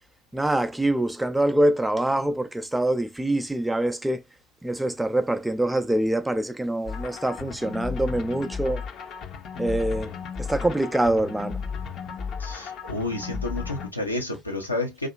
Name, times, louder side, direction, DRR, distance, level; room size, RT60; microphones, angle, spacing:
voice 1, 0.3-4.2 4.6-8.8 9.6-11.6, right 1 dB, 5° right, 0.4 m, -25 dB
sound 1, 6.8-13.9, left 6 dB, 40° left, 0.6 m, -34 dB
voice 2, 12.4-15.1, left 2 dB, 85° left, 0.7 m, -30 dB
2.7 x 2.4 x 2.3 m
figure-of-eight pair, 70°, 0 cm